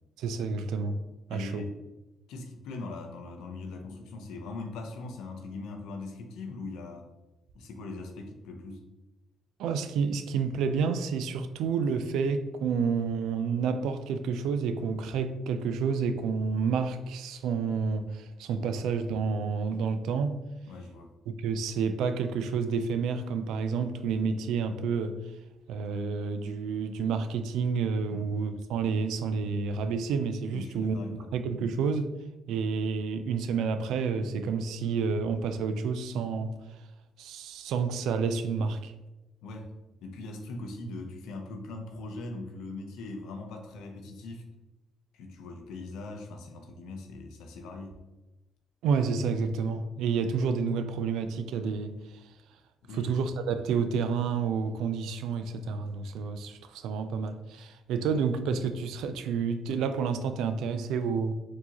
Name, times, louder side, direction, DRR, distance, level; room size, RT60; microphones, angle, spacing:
voice 1, 0.2-1.0 1.3-1.6 9.6-20.4 21.3-25.2 25.7-31.0 31.3-32.1 32.5-36.5 37.2-38.9 48.8-51.9 52.9-61.3, right 5 dB, 85° right, 0.3 m, -29 dB
voice 2, 1.3-1.8 2.3-7.1 7.5-8.9 20.7-21.1 28.1-28.3 30.5-31.3 39.4-39.7 40.0-44.4 45.1-48.0 52.8-53.1, left 2 dB, 90° left, 0.6 m, -41 dB
4.5 x 2.7 x 2.9 m
cardioid pair, 90°, 0 cm